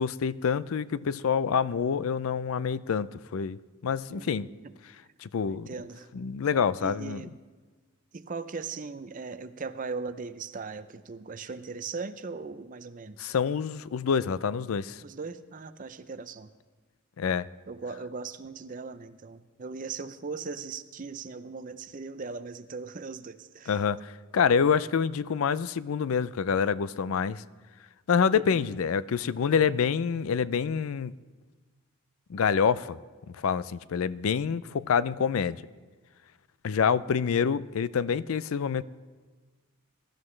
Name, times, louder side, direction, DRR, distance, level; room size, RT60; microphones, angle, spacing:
voice 1, 0.0-4.5 5.2-5.7 6.1-7.2 13.2-15.0 17.2-17.5 23.7-27.4 28.1-31.1 32.3-33.0 33.3-35.6 36.6-38.8, left 6 dB, 75° left, 0.4 m, -27 dB
voice 2, 4.1-4.7 5.5-6.1 6.8-7.3 8.1-13.3 15.0-16.5 17.7-23.8 28.3-28.7, right 4 dB, 40° right, 0.5 m, -39 dB
22.0 x 13.0 x 3.2 m
head